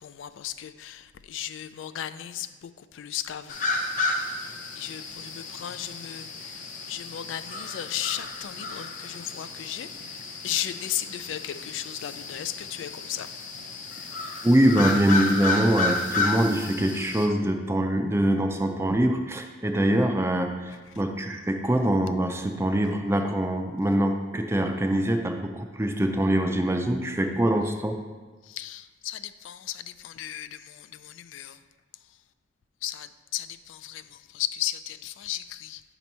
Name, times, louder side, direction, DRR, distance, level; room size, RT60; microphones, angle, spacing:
voice 1, 0.0-3.6 4.4-10.2 10.4-13.3 28.4-31.6 32.8-35.8, left 11 dB, 75° left, 12 dB, 0.3 m, -35 dB
sound 1, 3.5-17.3, left 3 dB, 40° left, 0.6 m, -32 dB
voice 2, 14.4-28.0, right 1 dB, 15° right, 5 dB, 0.4 m, -24 dB
8.3 x 3.0 x 5.3 m, 1.3 s
head